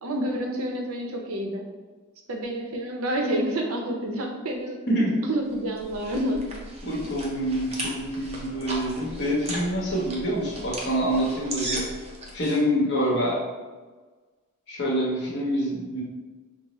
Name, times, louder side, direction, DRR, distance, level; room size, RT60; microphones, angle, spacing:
voice 1, 0.0-1.7 2.3-4.8 5.2-6.5, right 1 dB, 75° right, 2 dB, 0.6 m, -28 dB
sound 1, 5.5-12.6, right 1 dB, 30° right, 0.6 m, -37 dB
voice 2, 6.8-11.9 12.3-13.4 14.7-16.0, equal, 50° left, -4 dB, 1.0 m, -26 dB
5.4 x 2.0 x 3.0 m, 1.3 s
head